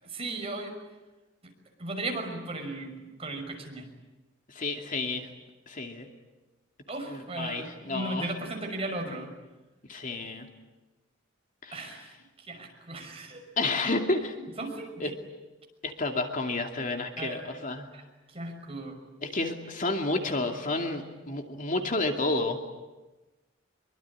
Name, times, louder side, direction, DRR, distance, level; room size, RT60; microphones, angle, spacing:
voice 1, 0.0-0.7 1.8-3.9 6.9-9.3 11.7-12.1 12.4-13.4 14.6-15.1 17.2-17.4 17.9-18.0 18.3-19.0, right 2 dB, 30° right, 3 dB, 6.0 m, -36 dB
voice 2, 4.5-5.3 5.7-6.1 7.1-8.3 9.9-10.5 11.6-11.9 13.6-14.3 15.0-15.1 15.8-17.9 19.2-22.6, left 2 dB, 45° left, 4 dB, 2.5 m, -30 dB
25.0 x 24.0 x 10.0 m, 1.1 s
head